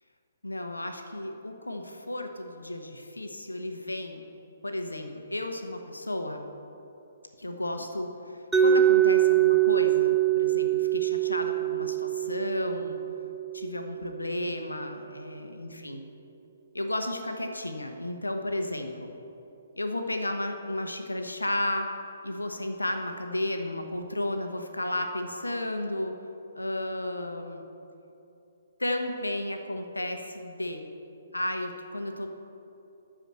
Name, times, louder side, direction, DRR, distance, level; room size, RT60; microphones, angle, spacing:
voice 1, 0.4-4.2 4.6-6.4 7.4-13.0 13.5-16.0 16.7-19.1 19.8-21.9 22.2-26.1 26.5-27.6 28.8-30.8 31.3-32.3, left 1 dB, 85° left, 5 dB, 1.0 m, -33 dB
Mallet percussion, 8.5-14.4, right 11 dB, 5° right, 0.6 m, -24 dB
12.0 x 4.9 x 7.6 m, 2.8 s
figure-of-eight pair, 130°, 0 cm